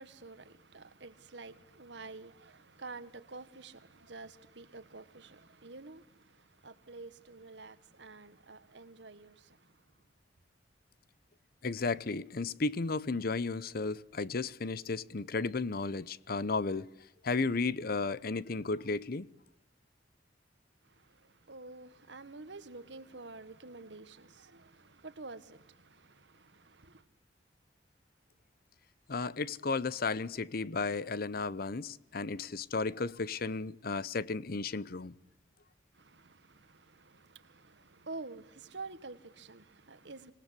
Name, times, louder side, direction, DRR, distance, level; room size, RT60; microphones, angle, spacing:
voice 1, 0.0-9.7 21.0-27.0 35.9-40.3, right 3 dB, 75° right, 1.6 m, -49 dB
voice 2, 11.6-16.9 17.2-19.3 29.1-35.1, left 3 dB, 55° left, 0.8 m, -34 dB
26.0 x 19.0 x 8.3 m
head